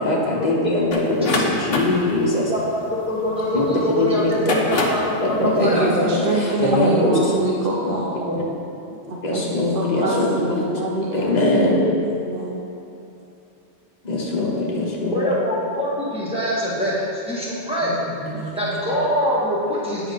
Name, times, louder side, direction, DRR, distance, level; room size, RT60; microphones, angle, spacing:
voice 1, 0.0-2.5 3.5-3.6 4.0-4.8 5.2-7.4 7.8-8.0 9.1-10.6 11.0-11.8 14.0-15.3 17.8-18.9, left 2 dB, 35° left, -3 dB, 1.3 m, -22 dB
sound 1, 0.9-3.6 4.2-5.1, left 3 dB, 55° left, 1.1 m, -24 dB
voice 2, 2.5-5.9 6.7-7.3 8.2-8.4 10.0-10.5 11.8-11.9 15.1-18.0 18.6-20.1, equal, 5° right, -7 dB, 1.7 m, -24 dB
voice 3, 5.4-8.2 9.3-11.8 12.3-12.6, right 2 dB, 55° right, -2 dB, 0.9 m, -25 dB
9.1 x 4.7 x 5.3 m, 2.7 s
omnidirectional pair, 1.2 m